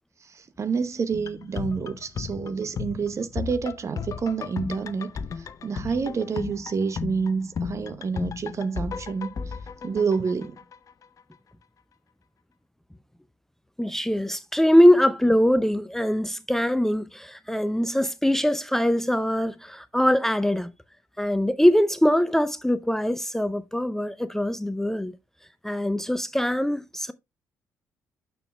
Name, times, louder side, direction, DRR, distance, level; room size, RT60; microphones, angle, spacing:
voice 1, 0.2-5.1 5.4-9.3 9.8-10.6, right 5 dB, 40° right, 0.8 m, -28 dB
sound 1, 1.1-11.0 11.3-11.4, left 6 dB, 45° left, 0.7 m, -35 dB
voice 2, 13.8-20.7 21.2-25.1 25.6-27.1, equal, 5° left, 0.5 m, -22 dB
7.6 x 6.9 x 2.3 m
figure-of-eight pair, 45°, 8 cm